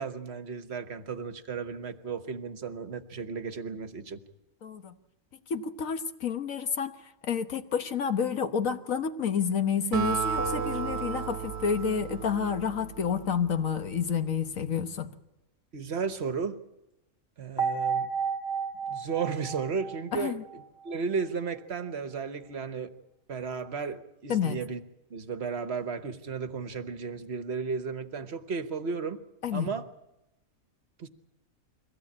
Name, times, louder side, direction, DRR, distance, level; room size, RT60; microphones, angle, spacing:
voice 1, 0.0-4.2 15.7-16.6 17.4-18.1 18.9-22.9 23.3-24.8 25.1-29.2 29.5-29.9 31.0-31.1, right 5 dB, 50° right, 1.3 m, -34 dB
voice 2, 4.6-4.9 5.5-6.9 7.2-15.1 20.1-20.4 24.3-24.6 29.4-29.7, left 7 dB, 65° left, 1.6 m, -29 dB
Acoustic guitar, 9.9-13.5, right 7 dB, 90° right, 1.5 m, -33 dB
sound 1, 10.4-11.9 17.6-20.9, right 5 dB, 15° left, 1.7 m, -33 dB
23.5 x 16.5 x 8.7 m
omnidirectional pair, 1.6 m